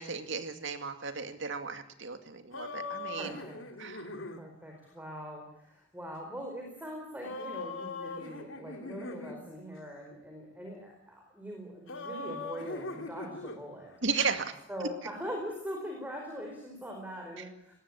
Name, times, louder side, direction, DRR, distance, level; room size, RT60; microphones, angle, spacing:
voice 1, 0.0-3.4 3.8-4.1 14.0-14.5 14.8-14.9 17.4-17.5, right 5 dB, 70° right, 8 dB, 2.2 m, -35 dB
sound 1, 2.5-4.4 7.2-9.4 11.9-13.6, left 3 dB, 80° left, 2.9 m, -40 dB
voice 2, 3.1-3.6 4.4-13.9 14.7-17.7, equal, 10° right, 1 dB, 4.6 m, -42 dB
20.0 x 17.0 x 8.9 m, 0.79 s
head